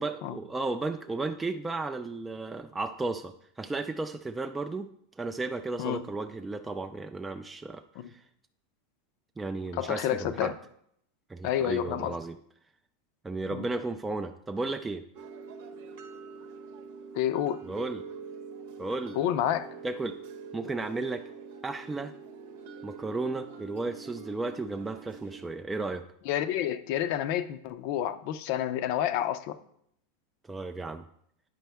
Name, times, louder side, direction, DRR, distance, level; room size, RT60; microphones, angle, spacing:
voice 1, 0.0-4.9 5.2-7.8 8.1-8.2 9.4-10.5 11.3-12.4 13.2-15.0 17.6-18.0 18.8-19.2 19.8-20.2 20.5-21.2 21.6-22.1 22.8-26.0 30.5-31.0, right 3 dB, 10° right, 6 dB, 0.3 m, -34 dB
voice 2, 9.7-10.5 11.4-12.1 13.5-13.7 17.1-17.6 19.2-19.7 26.3-29.6, left 11 dB, 55° left, 12 dB, 0.6 m, -29 dB
sound 1, 15.1-25.5, right 5 dB, 70° right, 0.9 m, -45 dB
9.2 x 5.3 x 3.4 m, 0.70 s
supercardioid pair, 135°, 0 cm